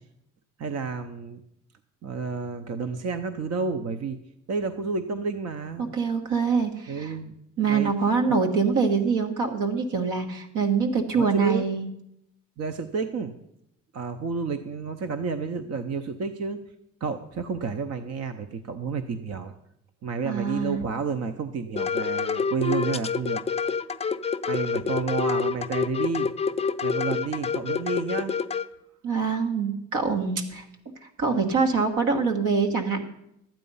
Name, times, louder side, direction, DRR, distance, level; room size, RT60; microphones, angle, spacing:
voice 1, 0.6-1.4 2.0-4.2 4.5-6.0 6.9-7.4 7.7-7.9 8.3-8.4 11.1-11.6 12.6-13.4 13.9-16.6 17.0-19.5 20.0-23.4 24.5-26.3 26.8-28.4, right 4 dB, 55° right, 9 dB, 0.7 m, -30 dB
voice 2, 5.8-7.1 7.6-11.9 20.2-20.8 29.0-30.9 31.2-33.0, right 5 dB, 85° right, 4 dB, 1.6 m, -24 dB
sound 1, 21.8-28.7, left 5 dB, 20° left, 0.5 m, -27 dB
12.0 x 9.0 x 5.5 m, 0.81 s
cardioid pair, 90°, 30 cm